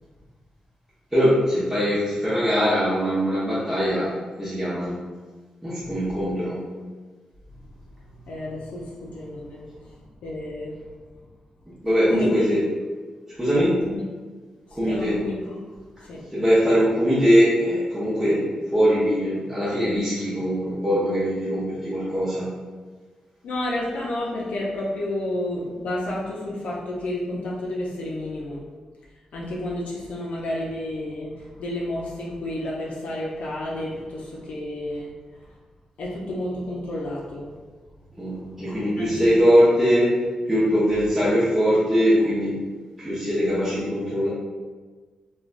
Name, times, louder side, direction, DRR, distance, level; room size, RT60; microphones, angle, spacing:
voice 1, 1.1-4.1 4.4-5.0 5.6-6.6 11.8-12.6 13.4-13.8 14.8-15.1 16.3-22.5 38.2-42.5 43.0-44.3, equal, 5° right, -10 dB, 0.6 m, -21 dB
voice 2, 5.8-6.1 7.5-7.6 8.0-10.8 12.1-12.5 13.9-14.0 14.7-15.4 15.7-16.2 23.4-28.6 29.3-35.6 36.0-37.5 38.6-39.5, left 1 dB, 80° left, -4 dB, 0.5 m, -31 dB
3.2 x 2.2 x 2.4 m, 1.4 s
wide cardioid pair, 120°, 2 cm